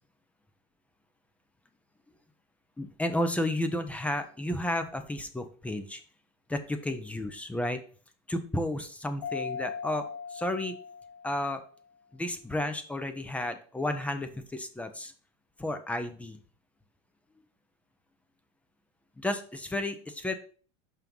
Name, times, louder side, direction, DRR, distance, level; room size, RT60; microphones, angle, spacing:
voice 1, 2.8-6.0 6.5-7.8 8.3-10.0 10.3-10.8 11.2-11.6 12.1-15.1 15.6-16.4 19.2-20.3, left 1 dB, 10° left, 8 dB, 0.9 m, -32 dB
Mallet percussion, 9.2-11.7, left 6 dB, 70° left, 1.6 m, -39 dB
5.6 x 4.6 x 5.4 m, 0.42 s
supercardioid pair, 115°, 16 cm